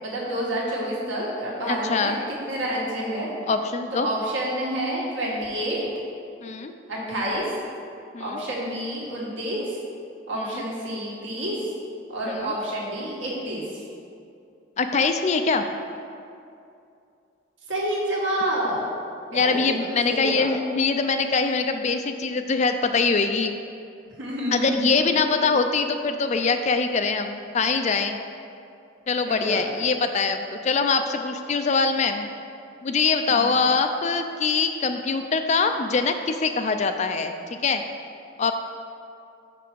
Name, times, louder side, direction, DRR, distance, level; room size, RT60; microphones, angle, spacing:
voice 1, 0.0-3.3 3.9-5.8 6.9-7.5 8.2-9.8 10.3-11.6 12.1-13.8 17.7-18.9 19.3-19.7 20.0-20.5 24.2-25.5 29.3-29.9 33.3-33.5, right 1 dB, 70° right, -5 dB, 1.9 m, -29 dB
voice 2, 1.7-2.2 3.5-4.1 6.4-6.7 8.1-8.4 10.5-10.6 12.3-12.5 14.8-15.6 19.3-23.5 24.5-28.2 29.1-32.2 32.8-37.3 37.6-37.8 38.4-38.5, left 4 dB, 35° left, 7 dB, 0.4 m, -23 dB
6.0 x 5.8 x 6.2 m, 2.5 s
head